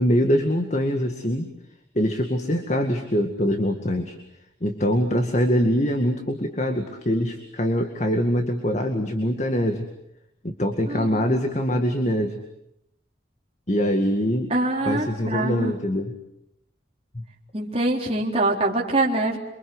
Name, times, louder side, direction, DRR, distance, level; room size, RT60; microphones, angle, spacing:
voice 1, 0.0-1.5 1.9-4.2 4.6-9.8 10.4-12.4 13.7-14.5 14.9-16.1 17.1-17.2, equal, 40° left, 6 dB, 2.1 m, -23 dB
voice 2, 10.9-11.3 14.5-15.7 17.5-19.4, right 2 dB, 30° right, -1 dB, 4.1 m, -24 dB
28.0 x 25.0 x 8.1 m, 0.78 s
head